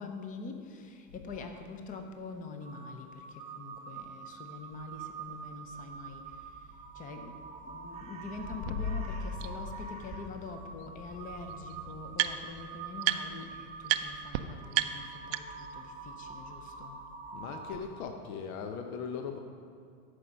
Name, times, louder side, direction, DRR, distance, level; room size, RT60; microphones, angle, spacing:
voice 1, 0.0-17.0, left 4 dB, 20° left, 5 dB, 0.6 m, -45 dB
Crow, 2.6-18.1, right 5 dB, 15° right, 0.7 m, -46 dB
sound 1, 8.5-14.1, left 5 dB, 50° left, 0.7 m, -41 dB
sound 2, 8.7-8.8 9.4-9.5 10.8-10.9 11.1-12.6 13.0-13.5 13.8-14.0 14.3-14.4 14.7-15.7, right 16 dB, 45° right, 0.5 m, -32 dB
voice 2, 17.3-19.4, left 6 dB, 70° left, 5 dB, 1.0 m, -39 dB
14.0 x 5.0 x 5.3 m, 2.3 s
supercardioid pair, 145°, 45 cm